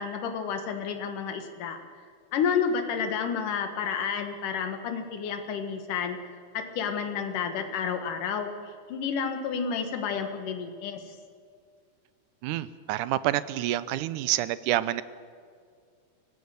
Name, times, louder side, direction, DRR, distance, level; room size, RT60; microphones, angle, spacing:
voice 1, 0.0-1.8 2.3-6.2 6.5-8.5 8.9-11.0, left 6 dB, 75° left, 6 dB, 3.1 m, -30 dB
voice 2, 12.4-15.0, right 14 dB, 80° right, 16 dB, 2.1 m, -28 dB
24.5 x 17.5 x 6.9 m, 2.1 s
omnidirectional pair, 3.8 m